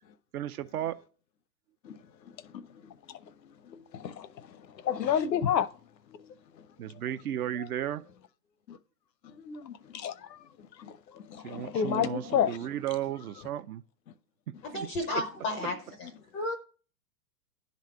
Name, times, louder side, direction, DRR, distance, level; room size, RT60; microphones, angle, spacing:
voice 1, 0.3-1.0 6.8-8.0 11.4-13.8 14.7-14.9, right 11 dB, 65° right, 0.7 m, -34 dB
voice 2, 3.1-5.7 6.1-6.3 7.6-7.7 8.7-8.8 9.2-10.5 10.8-12.7, left 8 dB, 90° left, 0.8 m, -32 dB
voice 3, 14.6-16.6, left 2 dB, 10° left, 0.4 m, -33 dB
10.5 x 4.0 x 4.6 m
hypercardioid pair, 125°, 49 cm